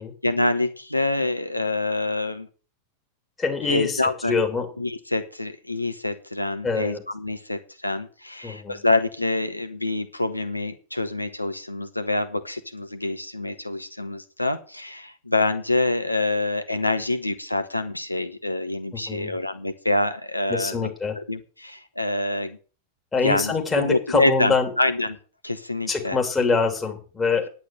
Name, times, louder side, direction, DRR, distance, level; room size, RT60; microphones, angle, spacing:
voice 1, 0.0-2.5 3.6-4.3 4.8-22.6 23.2-25.2 25.4-26.2, left 2 dB, 85° left, 10 dB, 0.9 m, -26 dB
voice 2, 3.4-4.7 6.6-7.0 8.4-8.8 19.1-19.4 20.5-21.2 23.1-24.7 25.9-27.5, left 4 dB, 15° left, 3 dB, 2.8 m, -25 dB
10.0 x 8.6 x 6.4 m, 0.37 s
figure-of-eight pair, 90°, 0 cm